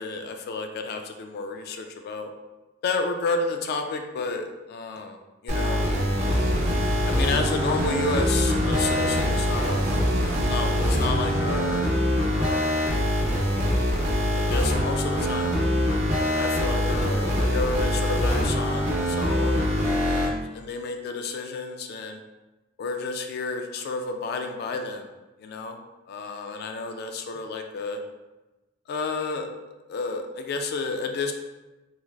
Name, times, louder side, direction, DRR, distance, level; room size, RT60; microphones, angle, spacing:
voice 1, 0.0-2.3 2.8-5.9 6.2-6.5 7.0-9.9 10.5-11.9 12.3-12.9 13.3-13.7 14.1-15.6 16.3-19.7 20.0-22.2 22.8-25.1 25.4-25.8 26.1-28.0 28.9-29.5 29.9-31.3, left 3 dB, 55° left, 5 dB, 0.3 m, -31 dB
sound 1, 5.5-20.3, equal, 35° right, 0.6 m, -24 dB
sound 2, 6.3-11.8, right 2 dB, 75° right, 0.3 m, -32 dB
3.1 x 2.3 x 2.3 m, 1.1 s
head